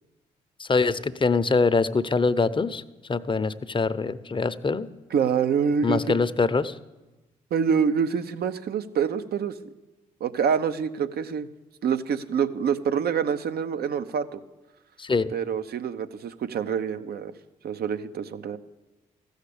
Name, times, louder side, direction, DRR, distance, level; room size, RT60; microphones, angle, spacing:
voice 1, 0.6-2.8 3.1-4.9 5.8-6.8 15.0-15.3, left 4 dB, 30° left, 12 dB, 0.7 m, -24 dB
voice 2, 5.1-6.2 7.5-9.6 10.2-11.5 11.8-14.4 15.3-17.3 17.6-18.6, right 7 dB, 65° right, 11 dB, 0.7 m, -26 dB
14.5 x 6.5 x 8.4 m, 1.1 s
hypercardioid pair, 45°, 18 cm